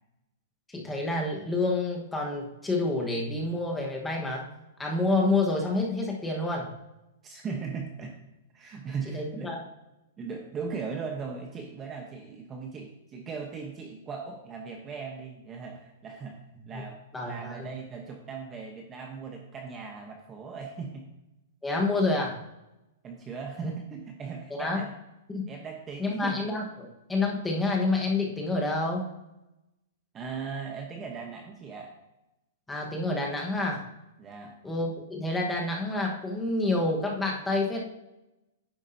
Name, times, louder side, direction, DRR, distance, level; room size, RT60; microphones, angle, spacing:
voice 1, 0.7-4.5 4.8-6.7 9.1-9.6 16.7-16.8 17.1-17.7 21.6-22.4 23.6-23.7 24.5-24.8 25.3-25.4 26.0-29.1 32.7-33.9 34.6-37.8, left 2 dB, 5° left, -1 dB, 1.2 m, -28 dB
voice 2, 7.2-8.2 8.5-9.5 10.2-16.4 16.7-21.0 23.0-24.9 25.5-26.5 30.1-32.0 34.2-34.6, right 5 dB, 20° right, 2 dB, 0.8 m, -38 dB
9.9 x 7.1 x 2.7 m, 0.94 s
hypercardioid pair, 160°, 0 cm